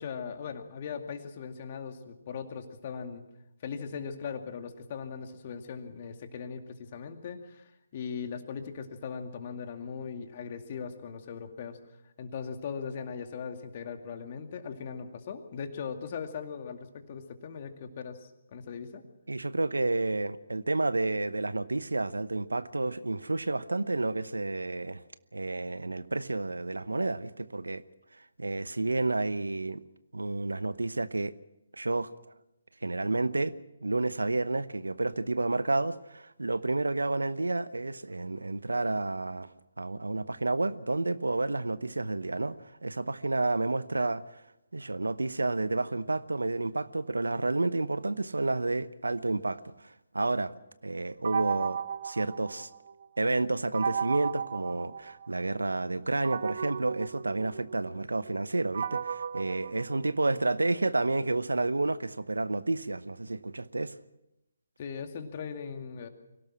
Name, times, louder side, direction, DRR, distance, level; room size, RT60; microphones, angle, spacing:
voice 1, 0.0-3.2 3.6-11.8 12.2-19.0 64.8-66.1, left 6 dB, 40° left, 2.3 m, -39 dB
voice 2, 19.3-25.0 25.3-27.8 28.4-29.8 30.1-31.3 31.7-32.1 32.8-33.5 33.8-39.5 39.8-44.2 44.7-50.5 50.8-52.7 53.2-63.9, right 2 dB, 80° right, 0.9 m, -30 dB
sound 1, 51.2-53.1 53.7-55.5 56.2-60.5, right 7 dB, 55° right, 0.8 m, -35 dB
24.0 x 17.5 x 6.2 m
figure-of-eight pair, 140°, 0 cm